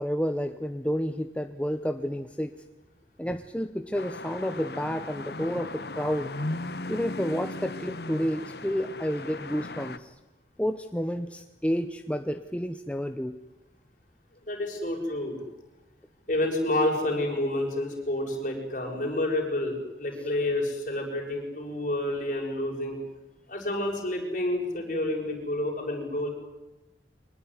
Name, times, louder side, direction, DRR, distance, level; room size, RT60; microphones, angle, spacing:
voice 1, 0.0-2.5 3.2-6.3 6.9-10.2 10.6-13.4, equal, 5° left, 8 dB, 0.8 m, -30 dB
sound 1, 3.9-10.0, left 2 dB, 60° left, 1.3 m, -37 dB
voice 2, 14.5-15.4 16.3-23.0 23.5-26.3, left 1 dB, 45° left, 1 dB, 6.6 m, -29 dB
24.0 x 20.0 x 9.8 m, 1.0 s
head